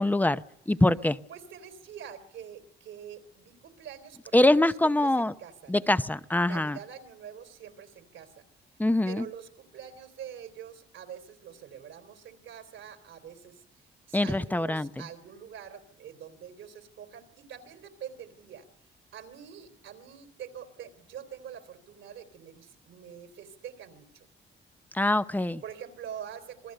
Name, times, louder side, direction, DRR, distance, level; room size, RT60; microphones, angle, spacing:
voice 1, 0.0-1.2 4.3-5.3 5.7-6.8 8.8-9.3 14.1-15.0 24.9-25.6, left 1 dB, 10° left, 13 dB, 0.9 m, -24 dB
voice 2, 1.3-4.7 5.0-6.0 6.5-8.4 9.1-18.7 19.1-24.3 25.6-26.7, right 8 dB, 80° right, 6 dB, 3.6 m, -45 dB
27.0 x 19.5 x 6.7 m, 0.79 s
cardioid pair, 90°, 20 cm